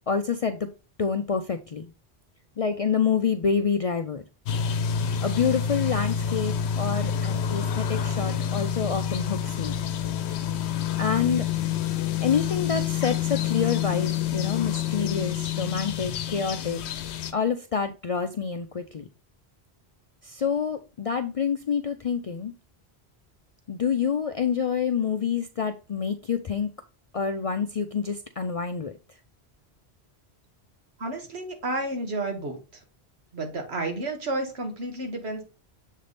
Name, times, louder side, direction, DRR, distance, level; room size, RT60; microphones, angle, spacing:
voice 1, 0.1-0.6 1.0-1.9 2.6-4.2 5.2-9.7 11.0-11.5 12.2-16.8 17.3-19.1 20.2-22.5 23.7-26.7 27.1-28.9, left 6 dB, 55° left, 6 dB, 0.4 m, -27 dB
sound 1, 4.5-17.3, left 8 dB, 80° left, 0.9 m, -28 dB
voice 2, 31.0-32.8 33.3-35.4, right 2 dB, 75° right, 3 dB, 1.7 m, -31 dB
7.3 x 3.4 x 4.0 m, 0.31 s
omnidirectional pair, 1.1 m